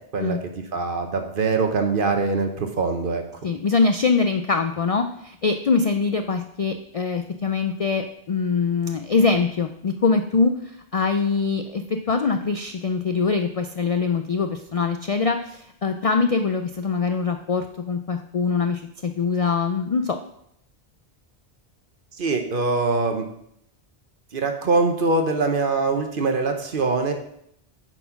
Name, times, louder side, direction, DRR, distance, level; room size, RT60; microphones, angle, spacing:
voice 1, 0.1-3.2 22.2-23.2 24.3-27.1, right 3 dB, 55° right, 5 dB, 1.1 m, -23 dB
voice 2, 3.4-10.5 10.9-20.2, left 4 dB, 55° left, 6 dB, 0.4 m, -23 dB
9.0 x 4.2 x 5.8 m, 0.73 s
omnidirectional pair, 1.1 m